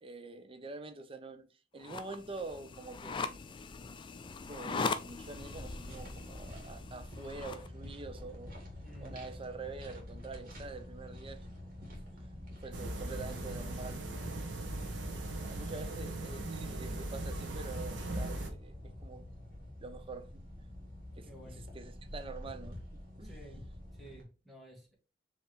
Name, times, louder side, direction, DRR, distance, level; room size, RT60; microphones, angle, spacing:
voice 1, 0.0-1.5 1.7-3.4 4.5-8.5 9.0-11.5 12.6-14.3 15.1-19.3 19.8-20.6 21.2-23.4, right 3 dB, 30° right, 0.5 m, -46 dB
Computer Mouse Manipulated, 1.8-7.7, left 4 dB, 25° left, 0.3 m, -40 dB
sound 1, 5.3-24.2, left 1 dB, 50° right, 1.7 m, -48 dB
voice 2, 8.8-9.2 21.2-21.6 23.2-23.6 23.9-25.0, right 1 dB, ahead, 1.4 m, -53 dB
sound 2, 12.7-18.5, right 1 dB, 70° right, 1.0 m, -39 dB
4.4 x 3.0 x 3.3 m
head